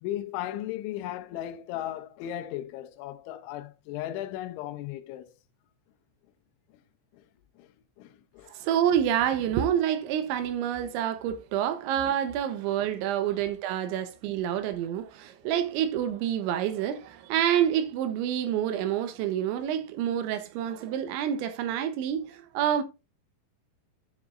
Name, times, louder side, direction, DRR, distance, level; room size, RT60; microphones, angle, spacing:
voice 1, 0.0-5.4 6.7-6.8 7.1-7.2 7.6-7.7 8.0-8.5, left 12 dB, 85° left, 3.1 m, -36 dB
voice 2, 8.5-22.8, right 10 dB, 80° right, 3.2 m, -28 dB
10.0 x 7.1 x 2.5 m
omnidirectional pair, 5.4 m